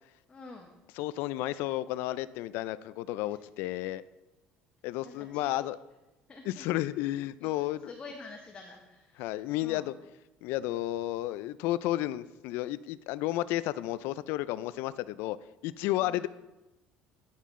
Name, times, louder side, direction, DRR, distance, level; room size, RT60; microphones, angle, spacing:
voice 1, 0.3-0.8 3.2-3.4 5.0-5.7 6.3-6.7 7.4-9.3 9.6-9.9 16.0-16.3, left 3 dB, 25° left, 1 dB, 1.0 m, -48 dB
voice 2, 1.0-4.0 4.8-5.8 6.5-7.9 9.2-9.9 10.4-15.4 15.6-16.3, left 15 dB, 80° left, 16 dB, 0.3 m, -32 dB
10.0 x 5.6 x 3.6 m, 1.0 s
cardioid pair, 110°, 4 cm